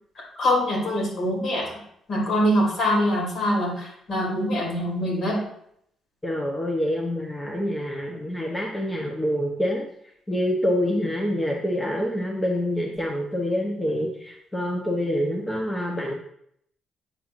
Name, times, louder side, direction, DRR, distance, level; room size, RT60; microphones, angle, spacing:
voice 1, 0.4-1.8 2.1-5.4, equal, 60° left, -2 dB, 2.7 m, -24 dB
voice 2, 6.2-9.8 10.3-16.1, equal, 20° left, -1 dB, 1.0 m, -26 dB
8.5 x 5.5 x 2.6 m, 0.70 s
cardioid pair, 90°, 0 cm